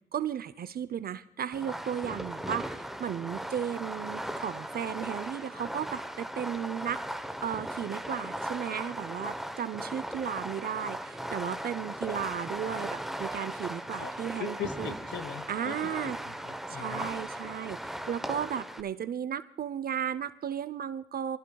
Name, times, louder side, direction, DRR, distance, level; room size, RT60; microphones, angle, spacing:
voice 1, 0.1-7.1 7.4-14.9 15.5-16.2 16.7-21.4, right 9 dB, 50° right, 14 dB, 0.6 m, -35 dB
Fireworks, 1.5-18.8, right 1 dB, ahead, 0.9 m, -38 dB
voice 2, 14.0-15.8 16.0-17.1, left 8 dB, 65° left, 12 dB, 1.3 m, -41 dB
23.5 x 15.0 x 2.3 m, 0.84 s
cardioid pair, 90°, 20 cm